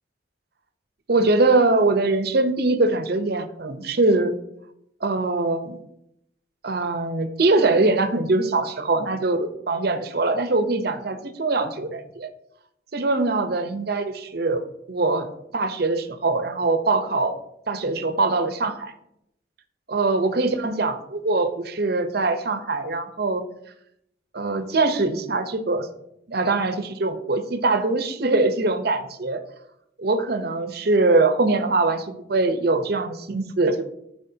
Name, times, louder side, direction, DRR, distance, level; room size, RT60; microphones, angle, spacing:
voice 1, 1.1-4.3 5.0-5.8 6.6-12.3 12.9-14.6 14.9-15.3 15.5-17.4 17.7-18.9 19.9-23.4 24.3-25.9 26.3-29.4 30.0-33.8, right 3 dB, 60° right, 9 dB, 0.8 m, -22 dB
12.5 x 4.9 x 2.8 m, 0.77 s
head